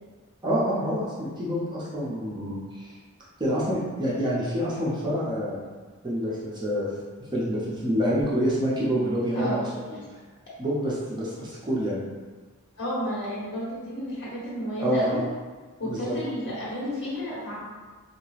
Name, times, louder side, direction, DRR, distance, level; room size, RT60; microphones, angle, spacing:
voice 1, 0.4-2.9 3.4-5.6 6.0-6.9 7.3-10.0 10.6-12.0 14.8-15.2 15.8-16.2, equal, 20° right, -6 dB, 0.5 m, -27 dB
voice 2, 9.3-9.7 12.8-15.2 15.8-17.5, equal, 55° left, -9 dB, 1.2 m, -31 dB
2.8 x 2.3 x 3.1 m, 1.4 s
head